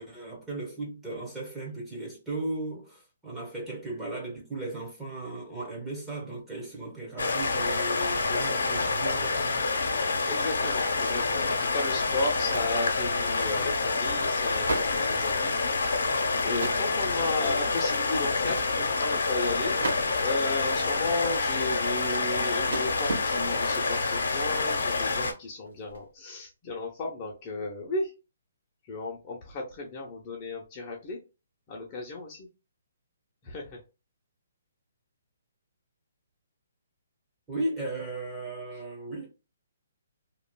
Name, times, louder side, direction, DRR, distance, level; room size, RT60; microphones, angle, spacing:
voice 1, 0.0-9.7 37.5-39.3, right 2 dB, 10° right, 1.2 m, -36 dB
sound 1, 7.2-25.3, left 3 dB, 80° left, 0.8 m, -27 dB
voice 2, 10.3-16.0 16.4-28.1 28.8-31.2 31.7-32.5 33.4-33.8, left 2 dB, 30° left, 0.7 m, -34 dB
sound 2, 14.7-15.9 16.4-17.1 17.5-17.8 18.1-18.2 18.4-19.2 19.8-20.5 21.1-23.9 24.5-24.8 25.1-26.1, right 2 dB, 75° right, 1.3 m, -37 dB
3.1 x 2.4 x 2.2 m
hypercardioid pair, 155°, 0 cm